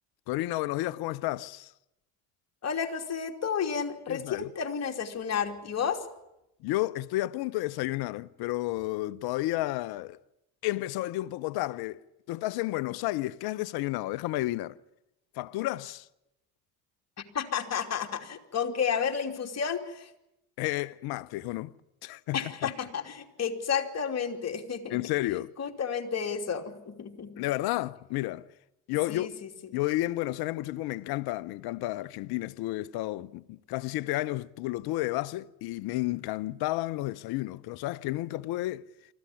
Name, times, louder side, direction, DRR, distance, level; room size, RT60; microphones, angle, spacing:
voice 1, 0.3-1.7 4.1-4.5 6.6-10.2 10.6-14.7 15.4-16.1 20.6-21.7 22.0-22.7 24.9-25.5 27.4-28.5 28.9-29.3 29.7-38.9, left 17 dB, 65° left, 0.9 m, -31 dB
voice 2, 2.6-6.1 17.3-20.1 22.3-25.0 25.6-27.3 29.1-29.5, left 7 dB, 40° left, 3.0 m, -31 dB
24.5 x 14.5 x 9.9 m
hypercardioid pair, 65°, 41 cm